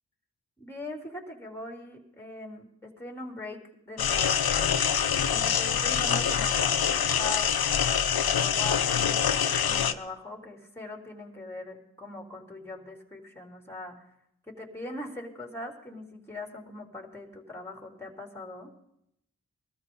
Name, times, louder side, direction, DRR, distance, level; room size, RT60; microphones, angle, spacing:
voice 1, 0.6-3.6 3.9-4.8 5.3-7.5 8.2-14.1 14.5-18.7, left 2 dB, 5° left, 2 dB, 3.5 m, -41 dB
sound 1, 4.0-9.9, left 8 dB, 65° left, 0.9 m, -25 dB
21.0 x 13.5 x 4.0 m, 0.79 s
cardioid pair, 40°, 40 cm